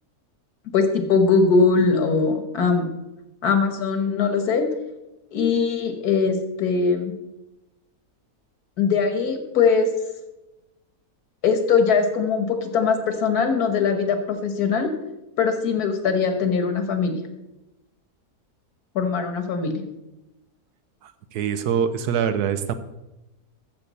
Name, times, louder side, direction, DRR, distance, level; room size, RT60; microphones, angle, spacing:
voice 1, 0.7-2.9 3.4-4.7 5.3-7.1 8.8-9.9 11.4-14.9 15.4-17.2 19.0-19.8, left 5 dB, 75° left, 7 dB, 1.7 m, -21 dB
voice 2, 21.0-22.7, right 8 dB, 85° right, 11 dB, 1.3 m, -24 dB
13.5 x 6.7 x 4.1 m, 0.96 s
omnidirectional pair, 1.6 m